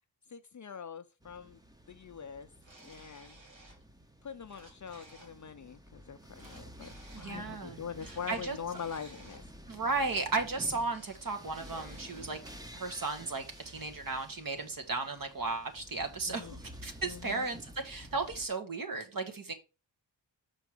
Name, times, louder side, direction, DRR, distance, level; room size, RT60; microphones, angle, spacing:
voice 1, 0.3-1.6 1.9-2.5 2.8-3.4 4.2-9.4 16.2-16.6 17.0-17.5 19.5-19.6, left 7 dB, 40° left, 0.5 m, -43 dB
sound 1, 1.2-18.5, right 1 dB, 10° right, 0.7 m, -51 dB
sound 2, 2.6-3.8 4.2-5.3 6.3-7.3 7.9-9.5 10.5-11.2 11.5-12.4 13.4-13.8, right 2 dB, 70° right, 3.0 m, -56 dB
voice 2, 7.1-7.8 8.3-8.6 9.7-12.4 12.7-19.5, right 3 dB, 45° right, 1.4 m, -35 dB
6.1 x 4.6 x 4.9 m
wide cardioid pair, 115°, 46 cm